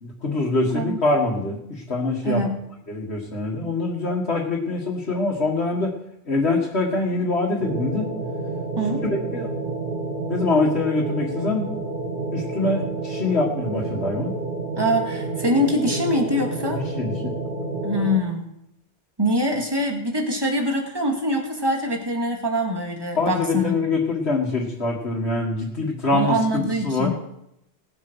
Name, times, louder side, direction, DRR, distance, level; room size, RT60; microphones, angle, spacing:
voice 1, 0.0-2.4 2.9-5.9 6.3-8.1 9.0-9.5 10.3-11.7 12.3-14.3 16.7-17.3 23.2-27.1, left 3 dB, 80° left, -3 dB, 2.2 m, -24 dB
voice 2, 2.2-2.6 8.8-9.0 14.8-16.8 17.8-18.4 19.2-23.8 26.1-27.1, equal, 20° right, 1 dB, 2.3 m, -24 dB
sound 1, 7.6-18.2, right 3 dB, 55° right, 1.7 m, -29 dB
19.0 x 7.9 x 6.3 m, 0.79 s
omnidirectional pair, 1.1 m